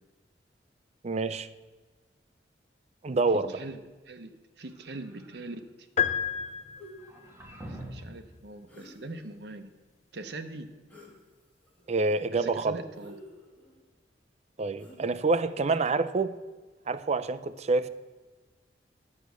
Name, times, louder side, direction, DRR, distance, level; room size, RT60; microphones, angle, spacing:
voice 1, 1.0-1.5 3.0-3.6 11.9-12.8 14.6-16.3 16.9-17.9, right 3 dB, 40° right, 0.5 m, -27 dB
voice 2, 3.3-5.9 7.6-9.7 10.1-10.7 12.3-13.2, right 2 dB, 70° right, 0.9 m, -42 dB
sound 1, 4.6-5.5 7.0-8.2, right 1 dB, 15° right, 1.6 m, -45 dB
sound 2, 6.0-7.3, left 8 dB, 40° left, 0.6 m, -30 dB
sound 3, 6.2-6.4 6.8-7.0 8.7-9.3 10.9-11.2 11.6-12.2 12.9-13.8 14.8-15.3, left 1 dB, 10° left, 2.4 m, -51 dB
10.0 x 8.1 x 6.2 m
head